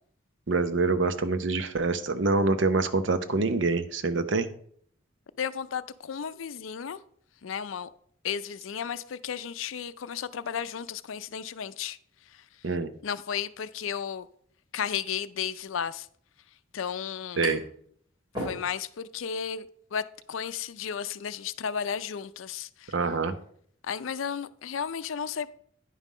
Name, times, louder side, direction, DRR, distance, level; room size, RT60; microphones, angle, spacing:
voice 1, 0.5-4.5 12.6-12.9 17.4-17.6 22.9-23.3, right 3 dB, 65° right, 0.7 m, -25 dB
voice 2, 5.4-7.0 7.4-7.9 8.2-12.0 12.3-12.5 13.0-14.3 14.7-16.1 16.7-17.5 18.4-23.0 23.8-25.5, left 7 dB, 80° left, 0.5 m, -34 dB
sound 1, 16.6-17.8 18.1-19.1, equal, 25° right, 3.6 m, -36 dB
9.9 x 5.5 x 5.0 m
head